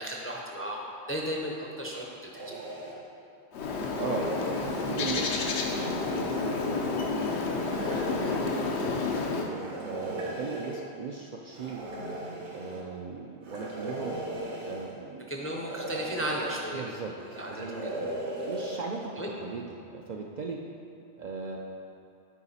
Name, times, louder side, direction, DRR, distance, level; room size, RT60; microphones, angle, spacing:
voice 1, 0.0-2.4 15.3-16.9 17.3-18.0 19.2-19.3, equal, 15° left, -2 dB, 0.5 m, -35 dB
sound 1, 2.3-3.0 3.7-5.0 5.5-6.8 7.6-8.7 9.4-10.8 11.5-12.8 13.4-14.9 15.5-16.6 17.2-18.8, right 1 dB, 90° right, 1.5 m, -38 dB
Bird, 3.5-9.5, left 4 dB, 80° left, 0.9 m, -30 dB
voice 2, 4.0-5.5 5.7-6.9 7.8-11.8 12.5-14.2 14.6-15.5 16.7-18.1 18.5-19.1 19.4-20.6 21.1-21.6, right 4 dB, 55° right, -1 dB, 0.5 m, -38 dB
8.4 x 4.9 x 4.1 m, 2.6 s
omnidirectional pair, 1.1 m